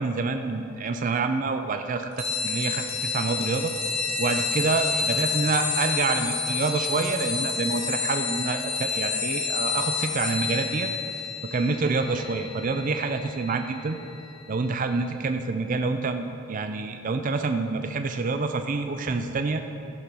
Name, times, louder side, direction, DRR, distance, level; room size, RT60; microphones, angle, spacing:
voice 1, 0.0-3.7 4.2-10.9 11.5-14.0 14.5-19.6, right 3 dB, 35° right, 6 dB, 0.4 m, -27 dB
sound 1, 2.2-14.3, left 5 dB, 30° left, 1.3 m, -29 dB
13.5 x 5.5 x 6.0 m, 2.8 s
head